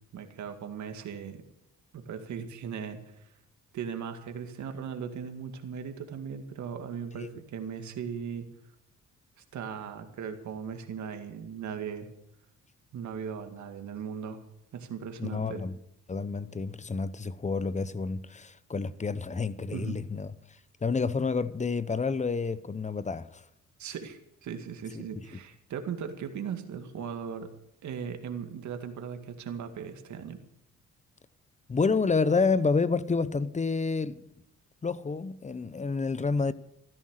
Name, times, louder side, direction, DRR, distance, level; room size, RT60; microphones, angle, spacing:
voice 1, 0.1-1.4 1.9-3.3 3.7-8.5 9.5-12.1 12.9-14.4 14.7-15.6 19.7-20.0 23.8-27.5 27.8-30.4, right 7 dB, 70° right, 2.2 m, -38 dB
voice 2, 15.2-15.8 16.1-23.4 24.9-25.2 31.7-34.2 34.8-36.5, left 4 dB, 25° left, 0.9 m, -29 dB
14.5 x 13.0 x 6.5 m
cardioid pair, 90°, 30 cm